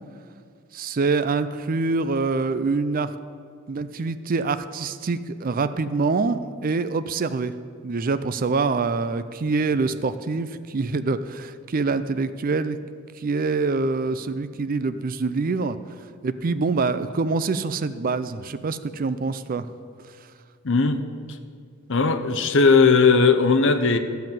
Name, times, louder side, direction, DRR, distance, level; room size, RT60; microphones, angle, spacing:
voice 1, 0.7-3.1 3.7-7.5 7.8-12.8 13.2-15.8 16.2-19.7, right 4 dB, 40° right, 12 dB, 0.4 m, -25 dB
voice 2, 20.6-21.0 21.9-24.0, left 4 dB, 55° left, 8 dB, 0.8 m, -17 dB
12.0 x 5.7 x 9.1 m, 2.1 s
head